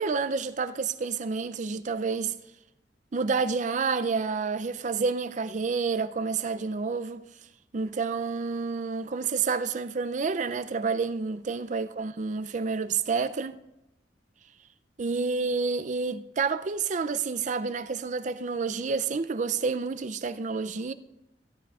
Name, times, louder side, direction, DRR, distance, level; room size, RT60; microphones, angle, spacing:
voice 1, 0.0-2.3 3.1-7.2 7.7-13.6 15.0-20.9, right 4 dB, 40° right, 0.4 m, -29 dB
16.0 x 11.5 x 2.4 m
head